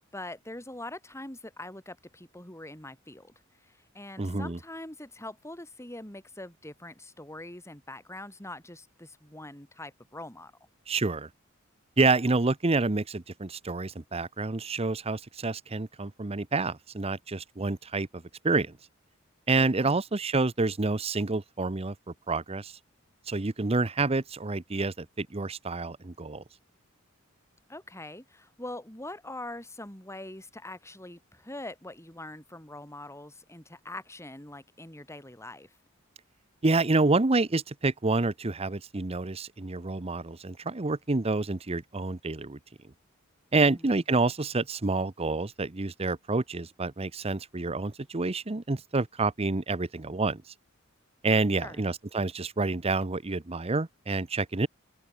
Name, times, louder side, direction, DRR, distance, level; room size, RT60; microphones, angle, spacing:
voice 1, 0.1-3.3 3.6-10.5 19.6-20.0 27.7-35.7 43.7-44.0 51.6-51.8, left 1 dB, 15° left, 6.8 m, -43 dB
voice 2, 4.2-4.6 10.9-11.3 12.0-18.8 19.5-21.9 22.3-22.7 23.3-26.4 36.6-42.6 43.5-50.4 51.2-54.7, right 3 dB, 30° right, 0.8 m, -28 dB
open air
head